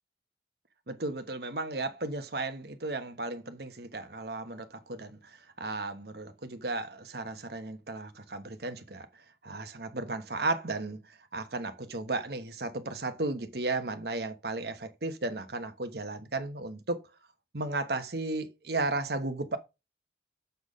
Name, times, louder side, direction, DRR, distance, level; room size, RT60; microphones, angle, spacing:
voice 1, 0.9-9.1 9.4-17.0 17.5-19.6, right 2 dB, 60° right, 1.2 m, -34 dB
6.9 x 6.3 x 5.0 m
head